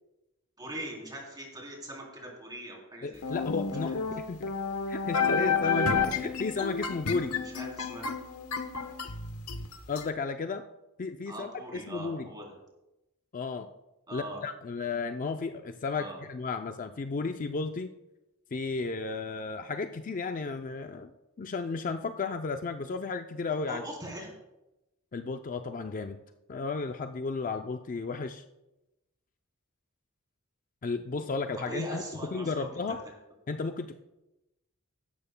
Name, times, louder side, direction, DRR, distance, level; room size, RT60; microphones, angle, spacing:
voice 1, 0.6-3.4 3.8-4.0 7.3-8.1 11.3-12.5 14.1-14.4 15.9-16.2 23.7-24.3 31.7-32.7, right 1 dB, 20° right, -1 dB, 3.4 m, -41 dB
voice 2, 3.0-4.5 4.9-7.3 9.9-10.6 11.0-12.3 13.3-13.7 14.1-17.9 18.5-21.1 21.4-23.8 25.1-26.2 26.5-28.4 30.8-32.0 32.3-33.0 33.5-33.9, left 4 dB, 40° left, 7 dB, 0.4 m, -33 dB
sound 1, 3.2-10.1, left 5 dB, 90° left, 1.0 m, -30 dB
15.5 x 12.5 x 2.2 m, 0.96 s
head